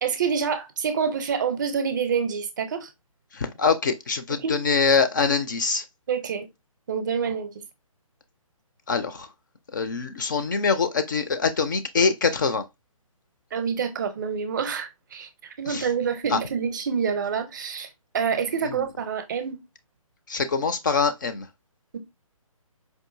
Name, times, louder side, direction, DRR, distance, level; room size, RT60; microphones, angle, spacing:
voice 1, 0.0-2.9 4.3-4.6 6.1-6.5 6.9-7.5 13.5-17.9 18.1-19.6, right 6 dB, 35° right, 0.6 m, -27 dB
voice 2, 3.3-5.8 8.9-9.3 9.7-12.6 15.7-15.8 16.3-16.4 18.7-18.8 20.3-21.5, left 5 dB, 35° left, 0.4 m, -24 dB
4.5 x 2.6 x 2.5 m
figure-of-eight pair, 145°, 18 cm